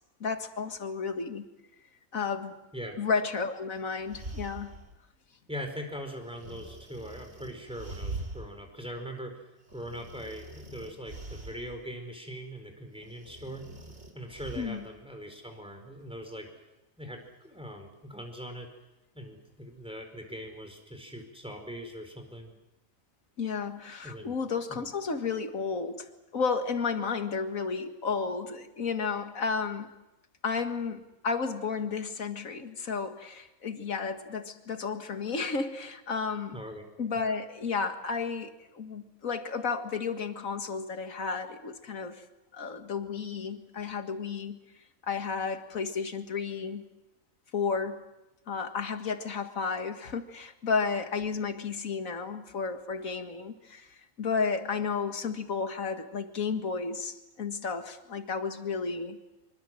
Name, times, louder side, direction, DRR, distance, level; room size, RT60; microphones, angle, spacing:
voice 1, 0.2-1.5 2.1-2.6 3.0-4.8 14.5-14.9 23.4-29.9 30.4-36.6 37.0-42.2 42.5-44.6 45.0-46.9 47.5-48.0 48.5-59.2, left 5 dB, 85° left, 8 dB, 2.1 m, -32 dB
sound 1, 3.8-5.0 6.4-8.5 8.9-9.0 9.7-11.8 13.0-14.9, right 2 dB, 55° right, 2.9 m, -43 dB
voice 2, 5.5-9.4 9.7-13.6 14.1-16.5 17.0-18.7 19.1-22.5 24.0-24.3 24.7-24.9 36.5-36.9, equal, 5° right, 4 dB, 4.5 m, -41 dB
25.0 x 24.5 x 7.7 m, 0.95 s
omnidirectional pair, 1.4 m